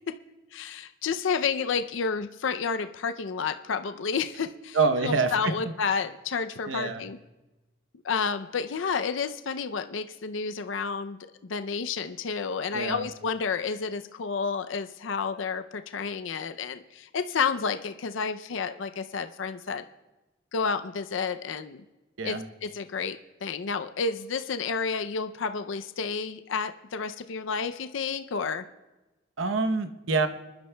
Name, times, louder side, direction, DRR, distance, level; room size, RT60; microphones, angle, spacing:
voice 1, 0.5-4.8 5.0-7.2 8.0-19.8 20.5-21.8 22.2-22.4 22.6-28.6, left 5 dB, 75° left, 9 dB, 0.5 m, -30 dB
voice 2, 4.7-6.0 6.7-7.0 12.7-13.1 22.2-22.5 29.4-30.3, right 4 dB, 80° right, 9 dB, 0.8 m, -26 dB
26.0 x 11.5 x 2.2 m, 1.1 s
head